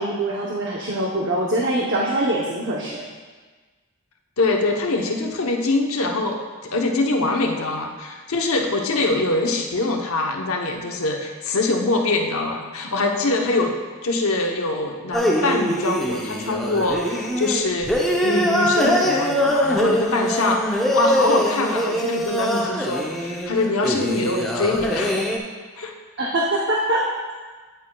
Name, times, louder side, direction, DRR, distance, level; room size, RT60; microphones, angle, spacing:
voice 1, 0.0-3.0 26.2-27.1, right 1 dB, 55° right, -3 dB, 0.8 m, -23 dB
voice 2, 4.4-13.7 14.0-17.9 18.2-25.3 25.8-25.9, left 2 dB, 80° left, 2 dB, 0.9 m, -23 dB
sound 1, 15.1-25.4, equal, ahead, 0.6 m, -23 dB
9.1 x 8.7 x 2.3 m, 1.4 s
head